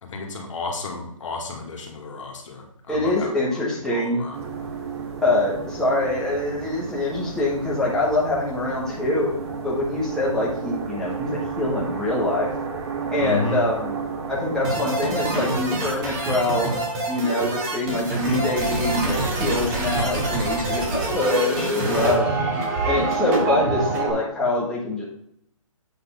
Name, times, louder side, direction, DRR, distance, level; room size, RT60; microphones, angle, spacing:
voice 1, 0.0-4.4 13.1-13.7, left 3 dB, 65° left, 1 dB, 2.1 m, -32 dB
voice 2, 2.9-4.2 5.2-9.3 9.6-12.5 13.1-14.0 14.3-22.3 22.9-25.0, left 2 dB, 5° left, -6 dB, 1.5 m, -24 dB
sound 1, 4.3-15.6, right 5 dB, 55° right, 1.8 m, -32 dB
sound 2, 14.6-24.1, right 2 dB, 30° right, 2.4 m, -25 dB
8.0 x 4.1 x 5.6 m, 0.72 s
hypercardioid pair, 150°, 18 cm